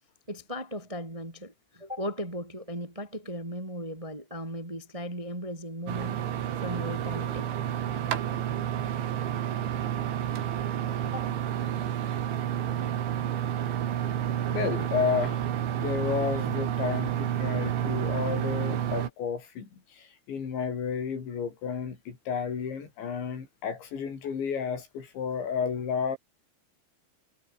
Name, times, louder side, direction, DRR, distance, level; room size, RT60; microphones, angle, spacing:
voice 1, 0.3-6.2 6.6-7.5 11.0-11.3, equal, 10° right, 2.0 m, -37 dB
sound 1, 5.9-19.1, right 10 dB, 80° right, 4.8 m, -30 dB
voice 2, 7.7-8.0 9.7-9.8 13.2-13.3 14.5-15.4 15.7-26.2, left 6 dB, 75° left, 6.9 m, -32 dB
omnidirectional pair, 5.3 m